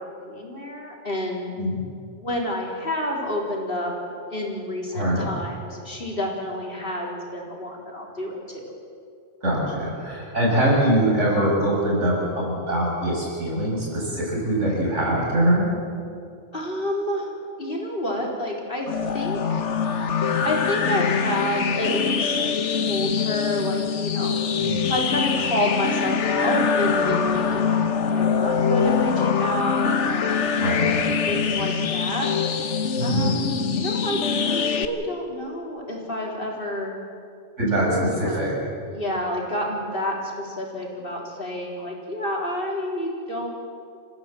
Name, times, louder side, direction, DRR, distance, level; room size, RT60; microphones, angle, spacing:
voice 1, 0.0-1.5 2.2-3.9 4.3-8.7 16.5-17.3 17.6-19.7 20.1-22.4 22.7-24.4 24.7-30.7 31.3-32.5 33.0-36.9 37.8-38.6 38.9-43.5, left 1 dB, 45° left, -1 dB, 4.1 m, -29 dB
voice 2, 4.9-5.3 9.4-15.7 24.6-24.8 30.6-30.9 33.0-33.4 37.6-37.8 38.2-38.5, right 1 dB, 65° right, -4 dB, 7.4 m, -23 dB
sound 1, 18.9-34.9, left 6 dB, 65° left, 1.4 m, -24 dB
29.0 x 15.5 x 7.8 m, 2.4 s
omnidirectional pair, 1.3 m